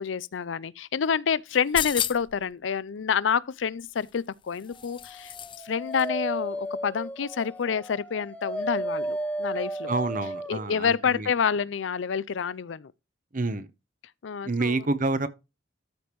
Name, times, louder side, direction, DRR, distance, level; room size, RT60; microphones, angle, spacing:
voice 1, 0.0-5.3 5.6-9.9 10.5-12.9 14.2-14.7, left 6 dB, 85° left, 0.5 m, -28 dB
sound 1, 1.5-2.4 3.9-5.7 5.9-6.1, left 9 dB, 25° left, 0.4 m, -33 dB
Dog, 5.1-10.7, right 1 dB, 5° left, 1.0 m, -34 dB
voice 2, 9.9-11.3 13.3-13.7 14.4-15.3, right 3 dB, 45° right, 0.9 m, -28 dB
13.0 x 5.2 x 3.1 m
head